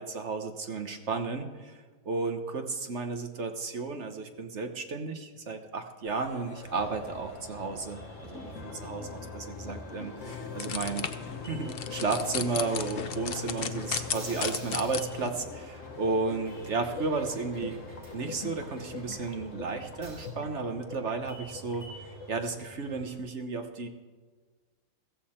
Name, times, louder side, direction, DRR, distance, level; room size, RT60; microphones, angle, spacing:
voice 1, 0.0-11.1 11.4-17.8 18.1-23.9, right 4 dB, 45° right, 6 dB, 1.1 m, -33 dB
sound 1, 6.0-22.3, left 4 dB, 45° left, 1.4 m, -44 dB
sound 2, 6.7-23.2, equal, 30° right, 4.1 m, -48 dB
sound 3, 10.2-15.3, left 7 dB, 65° left, 0.5 m, -35 dB
15.0 x 15.0 x 4.4 m, 1.4 s
omnidirectional pair, 2.0 m